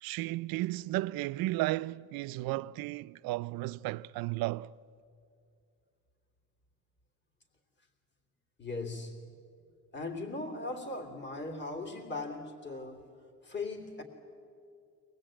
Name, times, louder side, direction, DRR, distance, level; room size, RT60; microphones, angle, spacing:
voice 1, 0.0-4.7, right 18 dB, 85° right, 0.5 m, -34 dB
voice 2, 8.6-9.3 9.9-13.1 13.4-14.0, left 2 dB, 30° left, 3.1 m, -39 dB
23.5 x 20.0 x 8.9 m
cardioid pair, 110°, 35 cm